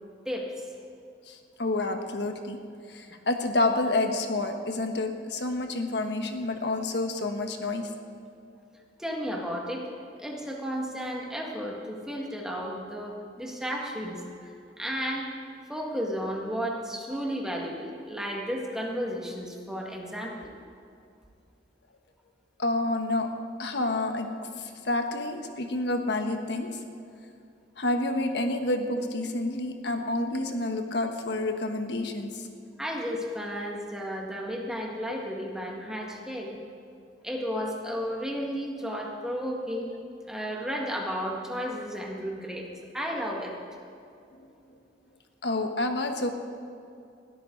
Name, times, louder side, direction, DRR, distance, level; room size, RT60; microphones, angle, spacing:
voice 1, 1.3-2.6 2.9-7.9 22.6-23.3 23.6-24.3 24.6-26.7 27.8-32.5 45.4-46.3, left 2 dB, 65° left, 5 dB, 1.4 m, -29 dB
voice 2, 9.0-9.8 10.2-14.2 14.8-15.3 15.7-20.5 32.8-36.6 37.2-39.9 40.3-42.7 42.9-43.5, equal, 5° right, -1 dB, 2.0 m, -33 dB
20.5 x 13.0 x 4.0 m, 2.5 s
head